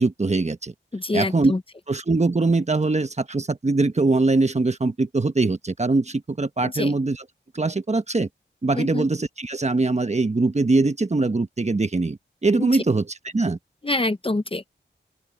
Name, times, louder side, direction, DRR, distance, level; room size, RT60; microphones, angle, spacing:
voice 1, 0.0-0.7 1.1-1.6 1.9-7.2 7.5-8.3 8.6-13.6, right 3 dB, 35° right, 1.2 m, -22 dB
voice 2, 0.9-1.6 6.6-6.9 8.8-9.1 12.6-12.7 13.8-14.7, left 2 dB, 25° left, 0.9 m, -25 dB
open air
wide cardioid pair, 85°, 20 cm